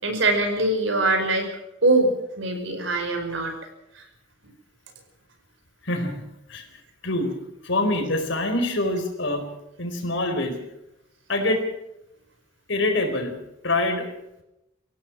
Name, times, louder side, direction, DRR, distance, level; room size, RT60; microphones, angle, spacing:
voice 1, 0.0-1.5 1.8-2.1 2.4-3.5, right 2 dB, 75° right, 5 dB, 5.5 m, -22 dB
voice 2, 5.8-6.1 6.5-6.6 7.0-7.3 7.6-9.4 9.8-10.6 11.3-11.6 12.7-13.4 13.6-14.1, left 2 dB, 70° left, 5 dB, 4.3 m, -24 dB
25.5 x 16.5 x 6.2 m, 0.86 s
head